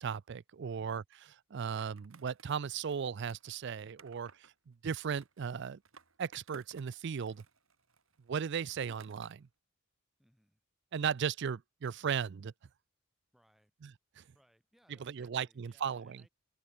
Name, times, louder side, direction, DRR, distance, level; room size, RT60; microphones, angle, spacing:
voice 1, 0.0-4.3 4.7-5.8 6.2-7.4 8.3-9.5 10.9-12.5 13.8-13.9 14.2-14.3 15.0-16.2, right 7 dB, 55° right, 0.4 m, -36 dB
Skateboard, 1.8-4.5 5.1-7.0 7.2-9.5, right 4 dB, 75° right, 4.3 m, -59 dB
voice 2, 10.2-10.6 13.3-13.7 14.3-16.3, equal, ahead, 6.3 m, -69 dB
head